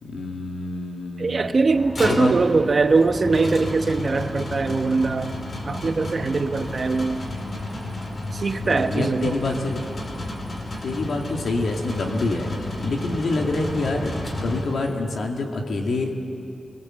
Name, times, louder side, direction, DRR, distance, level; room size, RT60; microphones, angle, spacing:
voice 1, 0.0-1.6 2.0-2.3 8.6-9.8 10.8-12.5 12.8-14.1 14.4-16.3, left 2 dB, 65° left, 1 dB, 2.4 m, -26 dB
voice 2, 1.2-5.3 5.7-7.2 8.3-9.4, right 3 dB, 40° right, 8 dB, 1.0 m, -21 dB
sound 1, 1.7-15.1, left 2 dB, 35° left, 3.1 m, -33 dB
sound 2, 1.7-14.6, equal, 15° left, 1.7 m, -38 dB
28.0 x 20.5 x 7.8 m, 2.7 s
wide cardioid pair, 170°, 0 cm